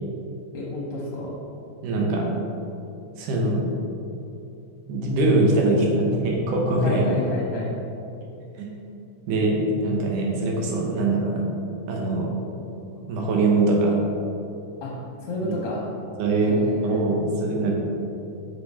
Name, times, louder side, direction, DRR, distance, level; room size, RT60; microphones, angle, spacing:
voice 1, 0.5-1.4 6.8-7.7 14.8-15.9 16.4-17.0, left 1 dB, 65° left, -4 dB, 1.5 m, -30 dB
voice 2, 1.8-2.3 3.2-3.7 4.9-7.1 8.6-8.7 9.3-11.4 11.9-12.3 13.1-14.0 15.4-15.5 16.2-17.7, right 2 dB, 85° right, -1 dB, 2.6 m, -22 dB
6.5 x 5.5 x 4.2 m, 2.8 s
omnidirectional pair, 3.6 m